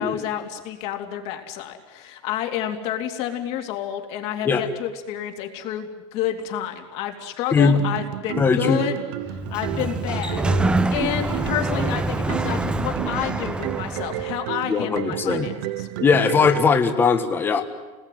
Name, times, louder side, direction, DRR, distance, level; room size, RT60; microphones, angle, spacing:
voice 1, 0.0-9.0 9.3-15.9, left 10 dB, 45° left, 4 dB, 3.0 m, -30 dB
sound 1, 7.6-16.7, right 15 dB, 60° right, 1.1 m, -32 dB
voice 2, 8.4-8.8 14.7-15.5 16.0-17.6, left 5 dB, 15° left, 6 dB, 1.5 m, -19 dB
Sliding door, 9.2-14.4, right 2 dB, 5° right, 0.8 m, -25 dB
29.0 x 20.0 x 9.4 m, 1.3 s
cardioid pair, 175°, 15 cm